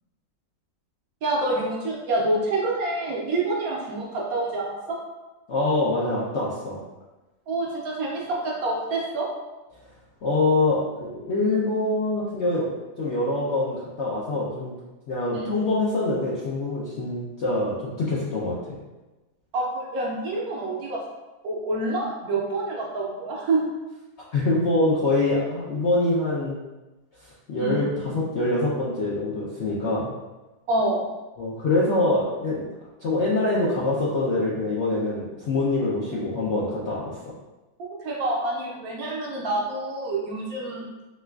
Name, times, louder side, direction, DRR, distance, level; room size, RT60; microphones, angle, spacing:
voice 1, 1.2-5.0 7.5-9.3 15.3-15.5 19.5-21.0 21.4-23.6 27.6-28.2 30.7-31.0 37.8-40.8, right 2 dB, 65° right, -3 dB, 1.1 m, -27 dB
voice 2, 5.5-6.8 10.2-12.7 13.0-14.8 15.1-18.8 24.3-26.6 27.5-30.1 31.4-32.6 33.0-37.2, left 2 dB, 65° left, -7 dB, 0.7 m, -24 dB
4.4 x 2.3 x 2.3 m, 1.1 s
omnidirectional pair, 1.8 m